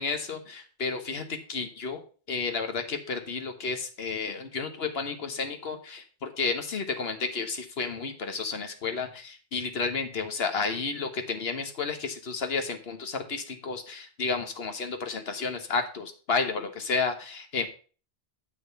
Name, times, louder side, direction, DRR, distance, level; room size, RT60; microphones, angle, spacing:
voice 1, 0.0-2.0 2.3-17.7, left 4 dB, 75° left, 7 dB, 1.5 m, -31 dB
7.8 x 6.4 x 5.3 m, 0.38 s
omnidirectional pair, 1.1 m